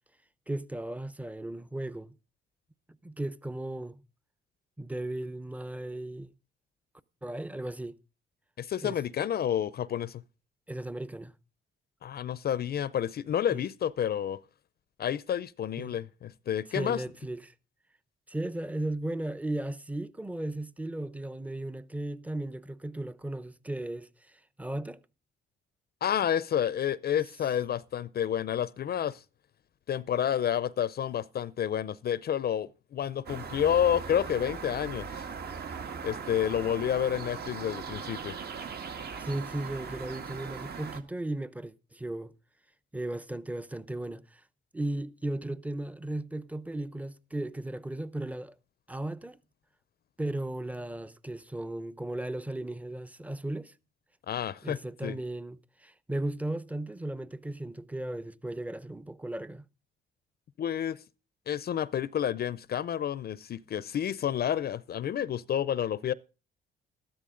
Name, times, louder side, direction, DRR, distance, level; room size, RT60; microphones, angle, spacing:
voice 1, 0.5-2.1 3.0-4.0 4.8-6.3 7.2-8.0 8.8-9.0 10.7-11.3 13.5-13.6 15.8-16.0 16.7-17.5 18.3-25.0 39.2-42.3 42.9-44.4 44.7-48.5 48.9-49.4 50.2-53.7 54.6-59.6, right 1 dB, 5° right, 0.7 m, -36 dB
voice 2, 8.6-10.2 12.0-14.4 15.0-17.0 26.0-29.2 29.9-35.3 36.0-38.4 54.3-55.2 60.6-61.0 61.5-66.1, left 9 dB, 50° left, 0.6 m, -30 dB
sound 1, 33.3-41.0, right 6 dB, 55° right, 1.8 m, -39 dB
13.5 x 12.5 x 3.8 m
cardioid pair, 90°, 20 cm